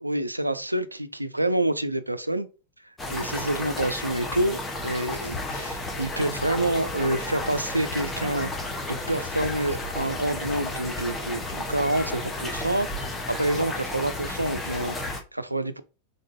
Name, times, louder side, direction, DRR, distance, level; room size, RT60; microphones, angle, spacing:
voice 1, 0.0-2.5 3.1-15.8, right 1 dB, 85° right, 0.4 m, -28 dB
sound 1, 3.0-15.2, left 2 dB, 15° left, 0.9 m, -32 dB
3.7 x 3.7 x 2.6 m
figure-of-eight pair, 90°, 0 cm